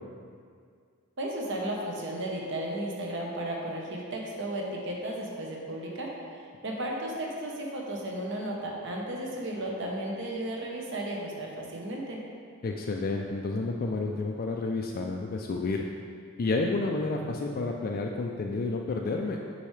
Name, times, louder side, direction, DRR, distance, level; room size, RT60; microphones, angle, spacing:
voice 1, 1.2-6.1 6.6-12.2, right 1 dB, 60° right, -1 dB, 1.0 m, -34 dB
voice 2, 12.6-15.8 16.4-19.4, left 3 dB, 45° left, 1 dB, 0.3 m, -30 dB
6.8 x 5.5 x 3.2 m, 2.2 s
head